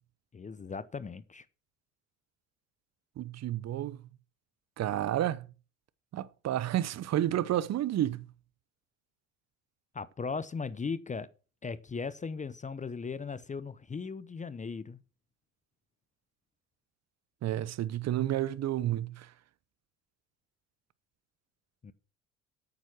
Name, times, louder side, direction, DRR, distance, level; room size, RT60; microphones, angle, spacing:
voice 1, 0.3-1.5 9.9-11.3 11.6-15.0 21.8-21.9, left 5 dB, 20° left, 0.7 m, -37 dB
voice 2, 3.2-4.0 4.8-5.5 6.1-8.3 17.4-19.3, right 12 dB, 45° right, 0.9 m, -30 dB
9.1 x 7.4 x 6.1 m
hypercardioid pair, 65°, 36 cm